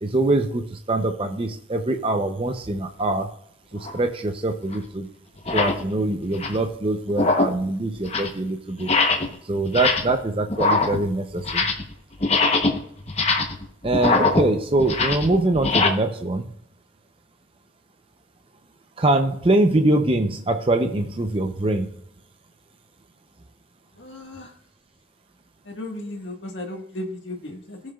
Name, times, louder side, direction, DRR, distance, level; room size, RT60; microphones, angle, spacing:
voice 1, 0.0-3.3 3.7-5.1 5.5-8.9 9.5-11.7 13.8-16.5 19.0-21.9, right 2 dB, 30° right, 5 dB, 0.6 m, -23 dB
sound 1, 3.8-4.0 4.7-4.8 5.4-5.8 6.2-6.7 7.1-7.6 7.9-8.4 8.8-9.4 9.6-10.2 10.5-11.9 12.2-15.9, left 3 dB, 35° left, 0.8 m, -23 dB
voice 2, 24.0-24.5 25.6-27.9, left 1 dB, 75° left, 3 dB, 1.5 m, -35 dB
16.0 x 6.4 x 2.3 m, 0.68 s
head